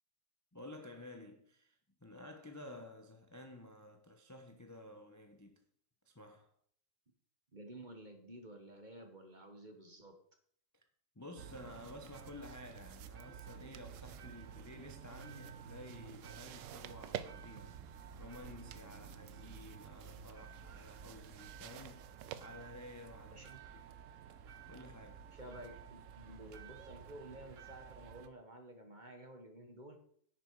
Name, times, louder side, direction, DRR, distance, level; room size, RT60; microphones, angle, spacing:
voice 1, 0.5-5.6 6.0-6.5 11.1-22.1 22.4-23.5 23.8-24.0 24.7-25.2, left 1 dB, 15° left, 0.8 m, -52 dB
voice 2, 7.5-10.1 23.3-23.6 25.3-30.0, right 1 dB, 25° right, 1.5 m, -52 dB
sound 1, 11.4-28.3, right 7 dB, 55° right, 1.0 m, -53 dB
sound 2, 11.5-23.6, right 11 dB, 80° right, 1.3 m, -53 dB
10.5 x 8.9 x 4.8 m
omnidirectional pair, 1.9 m